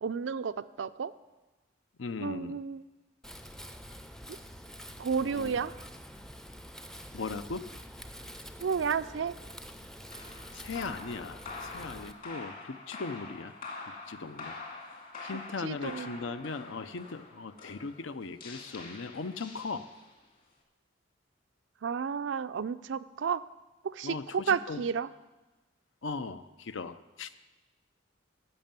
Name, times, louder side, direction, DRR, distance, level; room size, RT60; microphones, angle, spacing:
voice 1, 0.0-1.1 2.2-2.8 5.0-5.7 8.6-9.3 15.6-16.2 21.8-23.4 23.8-25.1, right 6 dB, 70° right, 14 dB, 0.4 m, -32 dB
voice 2, 2.0-2.6 5.2-5.6 7.1-7.7 10.5-13.5 13.9-14.6 15.2-19.9 24.0-24.9 26.0-27.3, left 4 dB, 75° left, 12 dB, 0.6 m, -38 dB
Wind, 3.2-12.1, equal, 5° left, 0.5 m, -47 dB
sound 1, 10.1-20.3, left 3 dB, 45° left, 2.1 m, -45 dB
11.0 x 6.7 x 8.9 m, 1.1 s
head